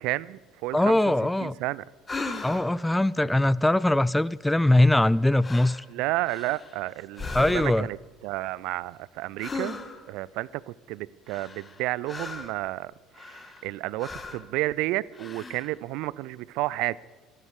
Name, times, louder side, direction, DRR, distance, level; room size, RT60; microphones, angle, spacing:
voice 1, 0.0-1.0 1.4-1.8 5.9-8.0 8.2-9.8 10.1-12.9 13.2-17.0, right 18 dB, 65° right, 0.4 m, -31 dB
voice 2, 0.7-1.5 2.4-5.8 7.3-7.9, left 1 dB, 5° left, 0.4 m, -21 dB
sound 1, 2.1-2.8 4.9-5.1 5.4-5.8 6.2-6.8 7.1-7.9 9.4-10.1 11.3-12.6 13.1-13.7 14.0-14.5 15.1-15.7, left 3 dB, 25° left, 1.5 m, -37 dB
13.5 x 11.5 x 6.8 m
figure-of-eight pair, 60°, 0 cm